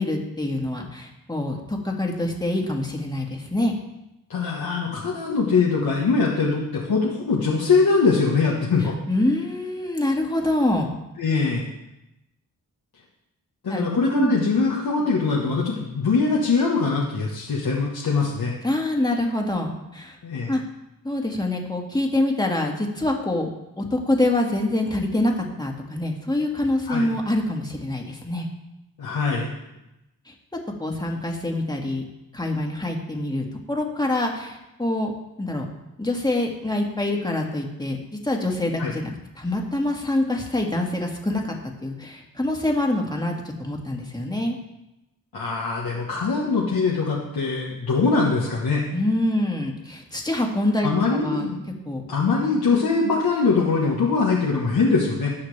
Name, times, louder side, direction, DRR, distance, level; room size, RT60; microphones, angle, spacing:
voice 1, 0.0-3.7 9.1-10.9 13.7-13.9 14.1-14.3 18.6-20.2 20.5-20.6 21.0-23.5 23.8-28.5 30.3-30.4 30.8-32.0 32.3-35.1 35.4-35.7 36.0-41.5 41.8-43.3 43.6-44.6 48.9-51.5 51.9-52.0, left 1 dB, 10° left, 0 dB, 2.0 m, -25 dB
voice 2, 4.3-8.9 11.2-11.7 13.6-18.5 20.2-20.5 26.9-27.1 29.0-29.5 38.8-38.9 45.3-48.8 50.8-51.6 52.1-55.3, left 4 dB, 85° left, -4 dB, 1.4 m, -22 dB
17.0 x 5.9 x 3.4 m, 0.91 s
cardioid pair, 55°, 36 cm